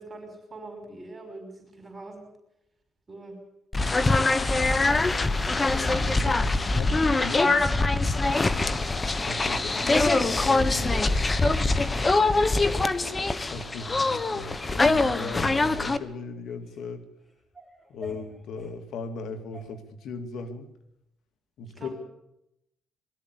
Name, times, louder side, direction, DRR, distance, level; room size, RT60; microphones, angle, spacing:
voice 1, 0.0-2.2 3.1-3.4 4.6-4.9 6.2-6.7 8.5-8.7 11.9-13.3 21.6-21.9, right 2 dB, 25° right, 4 dB, 5.8 m, -44 dB
sound 1, 3.7-16.0, left 3 dB, 25° left, 1.2 m, -23 dB
voice 2, 4.4-5.0 6.2-7.6 9.3-10.9 13.5-17.0 17.9-20.7 21.6-21.9, left 3 dB, 75° left, 8 dB, 2.3 m, -37 dB
sound 2, 6.9-7.5 7.9-8.1 8.5-9.4 10.0-10.1 10.6-11.7 12.3-12.4 12.7-13.2 13.4-14.1 14.5-14.8 15.0-16.9 17.2-18.8 19.5-19.7, equal, 10° left, 7.4 m, -49 dB
21.5 x 13.5 x 9.5 m, 0.84 s
cardioid pair, 90°, 0 cm